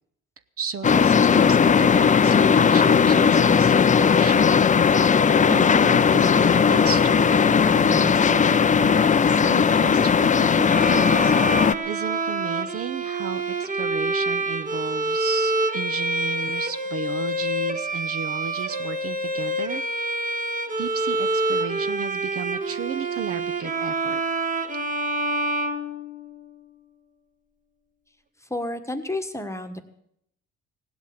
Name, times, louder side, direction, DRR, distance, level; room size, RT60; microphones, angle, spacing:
voice 1, 0.6-4.6 5.5-19.8 20.8-24.2, right 6 dB, 50° right, 11 dB, 0.8 m, -34 dB
sound 1, 0.8-11.7, left 6 dB, 25° left, 0.5 m, -18 dB
Bowed string instrument, 10.7-26.5, right 2 dB, 25° right, 1.6 m, -27 dB
voice 2, 28.4-29.8, left 2 dB, 10° left, 7 dB, 1.4 m, -30 dB
17.0 x 8.2 x 8.2 m, 0.73 s
cardioid pair, 90°, 30 cm